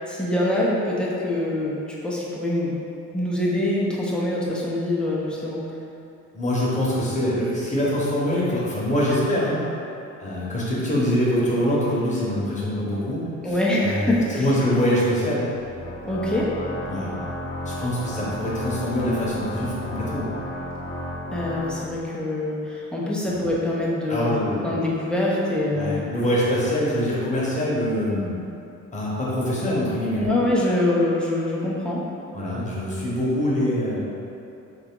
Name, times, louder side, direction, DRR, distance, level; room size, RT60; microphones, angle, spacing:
voice 1, 0.1-2.8 3.1-5.6 13.4-14.5 16.0-16.5 21.3-24.3 24.6-26.0 30.2-32.1, left 1 dB, 5° left, -6 dB, 0.9 m, -24 dB
voice 2, 6.3-9.6 10.2-15.5 16.9-17.2 17.6-20.3 23.3-23.4 24.1-24.8 25.7-28.3 28.9-30.2 32.3-34.0, equal, 25° left, -6 dB, 1.3 m, -24 dB
Organ, 15.6-22.2, left 1 dB, 40° left, 1.0 m, -33 dB
3.5 x 3.5 x 3.8 m, 2.8 s
cardioid pair, 90°, 30 cm